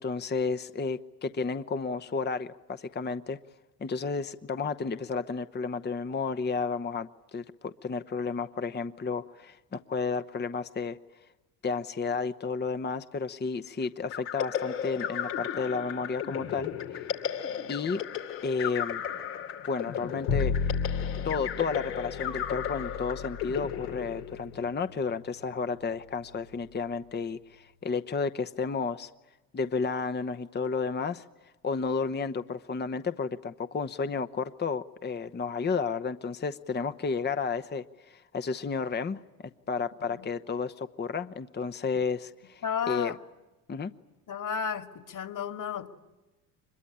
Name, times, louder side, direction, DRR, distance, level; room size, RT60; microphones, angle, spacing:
voice 1, 0.0-3.4 3.8-11.0 11.6-17.1 17.7-18.0 18.4-19.0 19.7-20.7 21.2-29.1 29.5-31.2 31.6-43.1 43.7-43.9, left 5 dB, 20° left, 11 dB, 1.0 m, -32 dB
sound 1, 14.1-24.7, left 9 dB, 80° left, 2.7 m, -35 dB
Bowed string instrument, 20.3-26.4, left 6 dB, 60° left, 1.5 m, -34 dB
voice 2, 42.6-43.2 44.3-46.0, left 7 dB, 40° left, 10 dB, 2.3 m, -33 dB
24.5 x 22.0 x 10.0 m, 1.1 s
hypercardioid pair, 60°, 48 cm